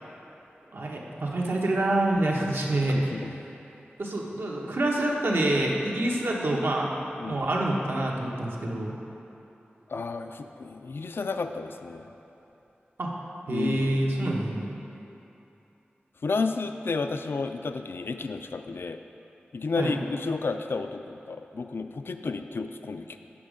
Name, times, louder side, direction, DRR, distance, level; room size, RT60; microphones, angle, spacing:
voice 1, 0.7-3.2 4.0-6.9 7.3-8.9 13.0-13.1 13.5-14.7 19.8-19.9, right 1 dB, 75° right, -2 dB, 1.1 m, -27 dB
voice 2, 2.9-3.4 7.2-7.4 9.9-12.1 13.5-14.2 16.2-19.0 19.5-23.2, left 4 dB, 75° left, 7 dB, 0.4 m, -32 dB
8.6 x 6.2 x 5.1 m, 2.9 s
wide cardioid pair, 65°, 4 cm